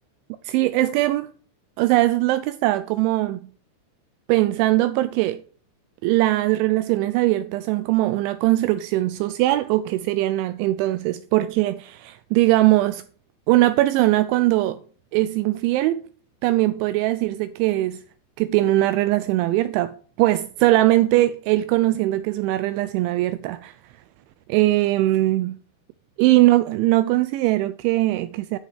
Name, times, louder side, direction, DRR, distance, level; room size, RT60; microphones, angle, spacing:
voice 1, 0.4-1.3 1.8-3.5 4.3-5.4 6.0-13.0 13.5-14.8 15.1-16.0 16.4-18.0 18.4-23.8 24.5-25.6 26.2-28.6, right 16 dB, 85° right, 2.7 m, -20 dB
11.0 x 5.6 x 4.7 m
omnidirectional pair, 5.7 m